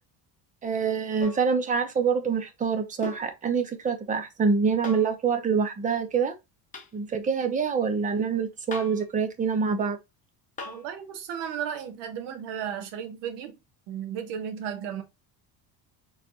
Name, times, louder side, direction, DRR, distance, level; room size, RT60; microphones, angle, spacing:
voice 1, 0.6-6.3 6.9-10.0, right 5 dB, 20° right, 0.5 m, -26 dB
sound 1, 1.2-1.5 3.0-3.3 4.8-5.2 6.7-6.9 8.7-9.1 10.6-10.9 12.6-12.7, left 3 dB, 20° left, 0.7 m, -39 dB
voice 2, 10.6-13.5 13.9-15.0, right 8 dB, 75° right, 1.2 m, -34 dB
4.3 x 3.3 x 2.8 m
cardioid pair, 165°, 43 cm